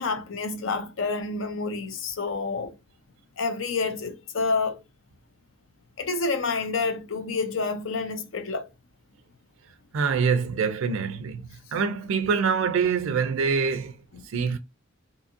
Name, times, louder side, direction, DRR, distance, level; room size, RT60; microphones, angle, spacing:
voice 1, 0.0-2.8 3.4-4.8 6.0-8.7 14.1-14.2, left 4 dB, 65° left, 0.5 m, -28 dB
voice 2, 9.9-14.0 14.2-14.6, right 5 dB, 70° right, 0.4 m, -25 dB
2.7 x 2.5 x 2.5 m
head